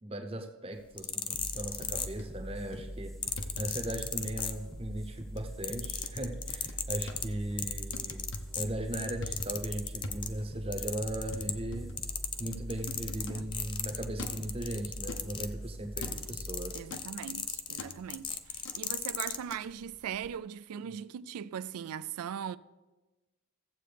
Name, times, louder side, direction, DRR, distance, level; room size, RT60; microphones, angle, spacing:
voice 1, 0.0-8.2 8.5-11.9 12.4-16.8 20.9-21.0, right 1 dB, 25° right, 0.8 m, -38 dB
sound 1, 0.8-2.5 3.2-5.0 5.3-10.3 10.7-11.7 12.0-19.4 20.1-20.3, left 7 dB, 20° left, 0.4 m, -36 dB
sound 2, 1.3-18.4, equal, ahead, 0.8 m, -43 dB
sound 3, 1.8-2.4 2.7-3.0 3.4-3.9 4.2-4.5 5.0-5.4 5.8-6.2 6.5-7.2 7.9-8.6 9.0-9.7 10.0-10.6 10.9-11.0 11.3-13.5 14.2-14.5 15.1-15.5 16.0-16.3 16.9-17.1 17.8-18.1 18.6-18.8 19.5-19.6, left 2 dB, 55° left, 0.7 m, -45 dB
voice 2, 16.7-22.6, right 8 dB, 80° right, 0.3 m, -40 dB
15.0 x 7.7 x 3.3 m
head